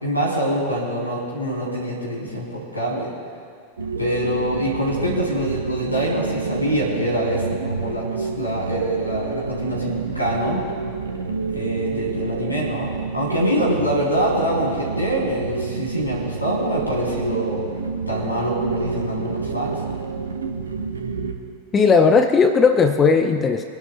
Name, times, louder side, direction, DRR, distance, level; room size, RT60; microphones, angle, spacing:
voice 1, 0.0-3.1 4.0-10.6 11.5-17.6 18.1-19.8, right 1 dB, 85° left, -3 dB, 3.5 m, -25 dB
sound 1, 3.8-21.3, right 4 dB, 70° right, 1.1 m, -29 dB
voice 2, 21.7-23.6, left 5 dB, 20° left, 8 dB, 0.6 m, -16 dB
26.0 x 11.5 x 2.2 m, 2.3 s
figure-of-eight pair, 90°, 0 cm